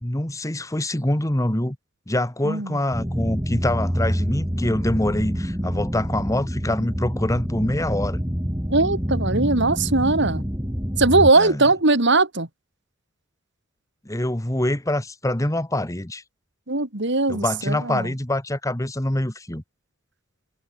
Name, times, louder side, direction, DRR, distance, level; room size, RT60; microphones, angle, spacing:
voice 1, 0.0-1.8 2.1-8.2 11.4-11.6 14.0-16.2 17.3-19.6, left 1 dB, 15° left, 1.5 m, -25 dB
voice 2, 2.4-2.8 8.7-10.4 11.0-12.5 16.7-18.1, right 3 dB, 60° right, 2.9 m, -20 dB
sound 1, 2.9-11.3, equal, 10° right, 4.0 m, -27 dB
head